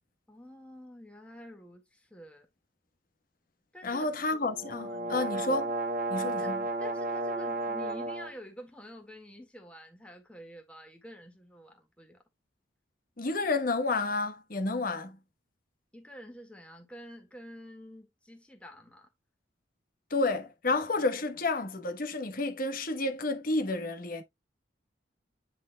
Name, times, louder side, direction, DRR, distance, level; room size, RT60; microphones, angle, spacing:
voice 1, 0.3-2.5 3.7-4.4 4.8-5.4 6.4-12.2 15.9-19.1 20.9-21.0, equal, 5° left, 1.8 m, -49 dB
voice 2, 3.8-5.7 6.1-6.6 13.2-15.2 20.1-24.2, left 2 dB, 50° left, 1.1 m, -30 dB
sound 1, 4.4-8.3, right 2 dB, 50° right, 1.4 m, -33 dB
10.0 x 4.2 x 2.2 m
head